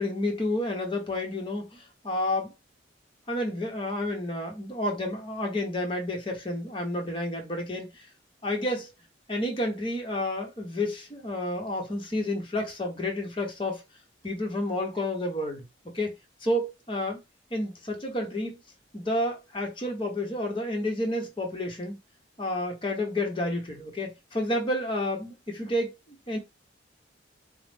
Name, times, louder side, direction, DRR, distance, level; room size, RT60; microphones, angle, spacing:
voice 1, 0.0-2.5 3.3-8.1 8.4-8.9 9.3-13.8 14.2-15.6 15.9-16.1 16.4-17.2 17.5-18.6 18.9-22.0 22.4-26.4, left 1 dB, 25° left, 1.1 m, -30 dB
4.6 x 2.1 x 3.4 m
head